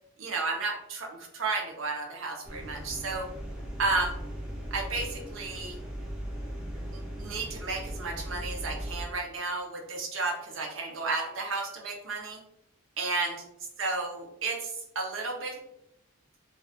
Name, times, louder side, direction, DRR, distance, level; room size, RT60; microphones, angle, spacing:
voice 1, 0.2-3.3 3.8-4.2 4.7-5.8 6.9-12.4 13.0-13.4 13.8-15.6, right 3 dB, 65° right, 1 dB, 0.6 m, -32 dB
sound 1, 2.4-9.0, equal, 5° right, 0.5 m, -38 dB
2.3 x 2.2 x 3.5 m, 0.82 s
head